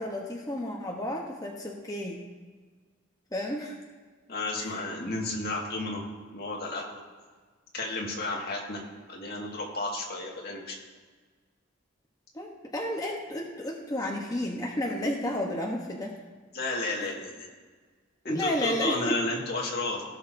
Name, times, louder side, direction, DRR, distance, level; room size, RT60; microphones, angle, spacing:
voice 1, 0.0-2.2 3.3-3.8 4.6-4.7 12.3-16.1 18.3-19.1, left 1 dB, 20° left, -1 dB, 0.9 m, -31 dB
voice 2, 4.3-6.0 6.3-7.0 7.7-8.8 9.1-10.8 16.5-17.5 18.2-20.0, left 2 dB, 55° left, -2 dB, 1.8 m, -32 dB
17.0 x 6.3 x 2.6 m, 1.5 s
head